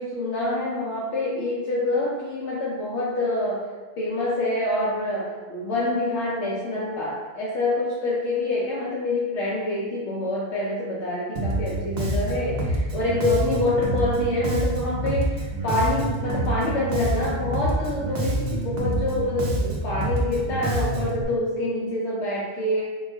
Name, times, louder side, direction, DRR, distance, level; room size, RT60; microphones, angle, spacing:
voice 1, 0.0-3.7 4.0-22.9, left 2 dB, 80° left, -6 dB, 0.9 m, -26 dB
Bass guitar, 11.4-21.2, right 1 dB, 50° right, 0.5 m, -27 dB
2.9 x 2.3 x 3.6 m, 1.4 s
omnidirectional pair, 1.2 m